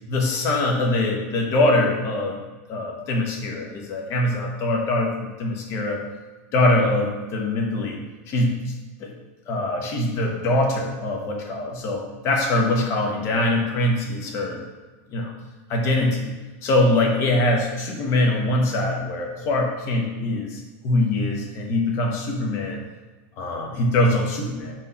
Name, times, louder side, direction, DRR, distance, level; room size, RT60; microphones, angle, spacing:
voice 1, 0.1-2.4 2.7-6.0 6.5-8.0 8.3-8.6 9.0-9.1 9.5-14.6 15.1-15.3 15.7-16.3 16.6-22.8 23.4-24.7, left 1 dB, 35° left, 1 dB, 1.2 m, -23 dB
5.6 x 4.6 x 5.7 m, 1.2 s
supercardioid pair, 165°, 8 cm